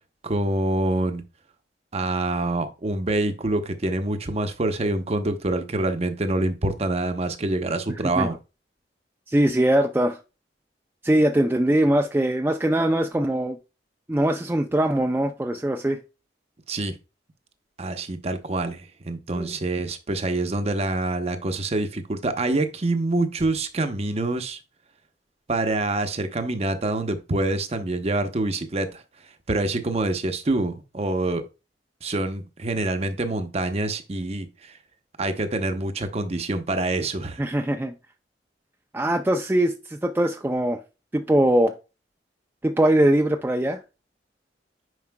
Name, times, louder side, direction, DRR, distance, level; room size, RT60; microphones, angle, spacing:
voice 1, 0.2-1.2 1.9-8.3 16.7-16.9 17.8-24.6 25.5-29.0 29.5-31.4 32.0-34.8 35.2-37.4, right 2 dB, 35° right, 0.7 m, -26 dB
voice 2, 9.3-10.2 11.0-13.6 14.1-16.0 19.3-19.5 37.4-37.9 38.9-40.8 41.1-41.7 42.6-43.8, right 1 dB, 10° right, 0.4 m, -22 dB
9.3 x 4.8 x 2.2 m
head